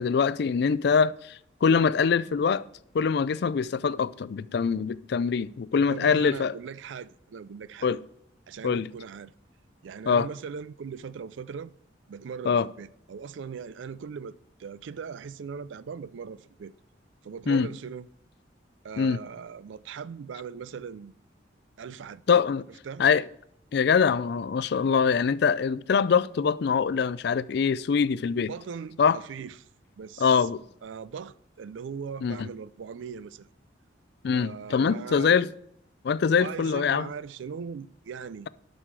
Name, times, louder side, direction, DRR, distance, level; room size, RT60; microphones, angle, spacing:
voice 1, 0.0-2.6 2.9-6.5 7.8-8.0 8.6-8.9 10.1-10.3 12.5-12.7 17.5-17.7 19.0-19.2 22.3-22.7 23.0-23.2 23.7-28.5 29.0-29.2 30.2-30.6 32.2-32.5 34.2-35.5 36.0-37.1, left 6 dB, 60° left, 0.4 m, -23 dB
voice 2, 5.9-7.9 8.5-9.3 9.8-11.7 12.1-16.7 17.2-18.1 18.8-21.1 21.8-22.2 22.9-23.0 28.5-29.7 30.0-30.5 30.8-33.5 34.3-35.3 36.4-38.5, right 6 dB, 80° right, 0.4 m, -39 dB
11.0 x 6.4 x 4.6 m
head